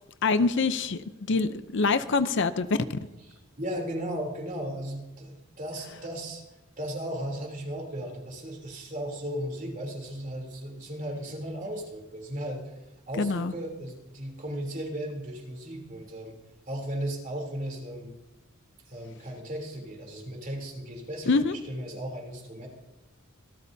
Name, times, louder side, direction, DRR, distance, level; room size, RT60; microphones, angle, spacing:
voice 1, 0.2-3.0 13.2-13.5 21.3-21.5, left 3 dB, 55° left, 12 dB, 0.6 m, -25 dB
voice 2, 3.2-6.4 6.8-12.7 13.1-16.3 16.7-18.2 18.9-22.7, right 1 dB, 40° right, 1 dB, 3.3 m, -36 dB
26.5 x 13.0 x 2.8 m, 0.99 s
head